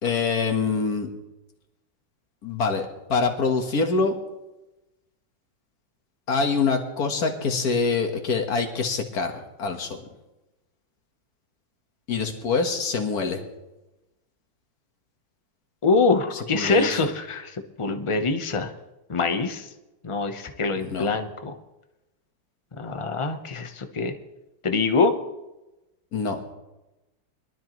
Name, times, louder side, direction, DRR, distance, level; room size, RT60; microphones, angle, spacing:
voice 1, 0.0-1.1 2.4-4.2 6.3-10.1 12.1-13.4 16.3-16.9 20.7-21.1 26.1-26.4, left 4 dB, 55° left, 5 dB, 1.9 m, -25 dB
voice 2, 15.8-18.7 19.1-19.7 20.0-21.5 22.8-24.1 24.6-25.1, left 4 dB, 30° left, 7 dB, 0.5 m, -24 dB
22.5 x 12.5 x 3.1 m, 1.0 s
omnidirectional pair, 2.0 m